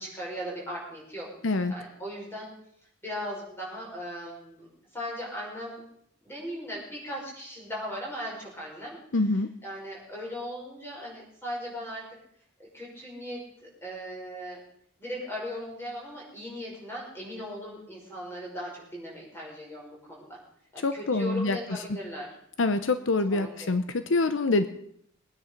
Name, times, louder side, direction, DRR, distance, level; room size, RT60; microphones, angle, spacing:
voice 1, 0.0-1.3 1.7-2.5 3.0-4.7 4.9-5.8 6.2-9.0 9.6-12.2 12.7-14.6 15.0-20.4 20.7-22.3 23.3-23.7, equal, 10° left, -3 dB, 5.4 m, -38 dB
voice 2, 9.1-9.5 20.8-21.6 22.6-24.7, left 3 dB, 70° left, 10 dB, 0.7 m, -25 dB
21.0 x 9.7 x 5.2 m, 0.69 s
head